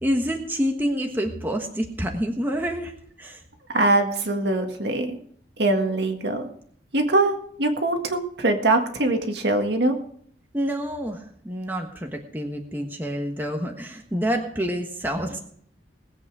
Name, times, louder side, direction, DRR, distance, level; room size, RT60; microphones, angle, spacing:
voice 1, 0.0-2.9 3.2-3.4 10.5-15.4, equal, 10° right, 2 dB, 1.3 m, -27 dB
voice 2, 3.7-5.2 5.6-6.5 6.9-10.0, right 2 dB, 65° right, 4 dB, 1.8 m, -22 dB
19.5 x 8.4 x 4.9 m, 0.62 s
head